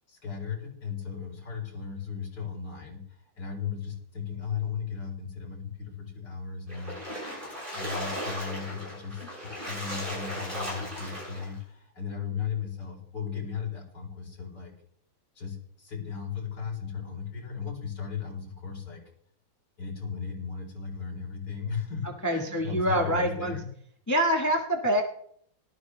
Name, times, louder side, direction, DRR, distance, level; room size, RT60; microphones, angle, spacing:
voice 1, 0.1-6.9 7.7-14.7 15.3-19.0 19.8-23.7, left 6 dB, 60° left, -1 dB, 4.8 m, -36 dB
Splash splatter, 6.7-11.5, equal, 25° right, 7.0 m, -36 dB
voice 2, 22.2-23.6 24.1-25.0, equal, 10° left, 1 dB, 1.4 m, -25 dB
18.5 x 13.0 x 3.3 m, 0.64 s
omnidirectional pair, 2.1 m